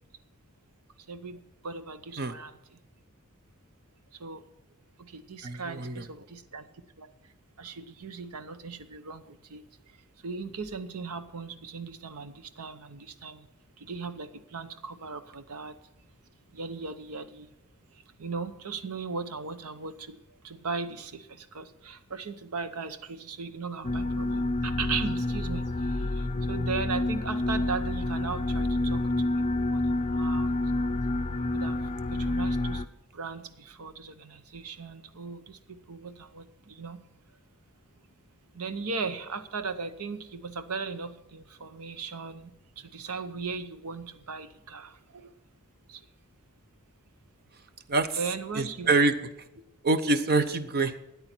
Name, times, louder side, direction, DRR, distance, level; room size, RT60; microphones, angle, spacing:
voice 1, 1.1-2.8 4.1-4.5 5.0-6.7 7.0-7.1 7.6-13.5 13.8-15.8 16.5-17.5 17.9-20.2 20.4-30.5 31.5-31.8 32.1-32.8 33.1-37.0 38.5-42.5 42.8-45.3 45.9-46.0 48.2-48.9, right 4 dB, 80° right, 11 dB, 0.8 m, -38 dB
voice 2, 5.4-6.0 47.9-48.2 48.5-49.1 49.8-50.9, right 3 dB, 45° right, 12 dB, 0.7 m, -25 dB
sound 1, 23.8-32.9, left 2 dB, 30° left, 0.4 m, -28 dB
13.0 x 9.5 x 4.5 m, 0.94 s
head